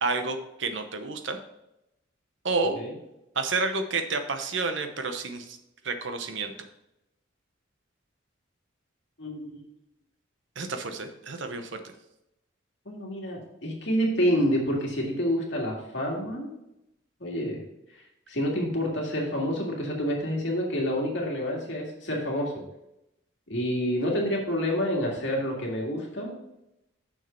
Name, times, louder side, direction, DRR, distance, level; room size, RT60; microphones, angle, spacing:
voice 1, 0.0-1.4 2.4-2.7 3.4-5.6 5.8-6.5 10.6-11.8, right 3 dB, 65° right, 7 dB, 0.9 m, -30 dB
voice 2, 9.2-9.6 12.9-16.5 17.2-17.6 18.3-22.6 23.5-26.4, equal, 65° left, -1 dB, 2.0 m, -28 dB
6.5 x 6.3 x 4.4 m, 0.87 s
head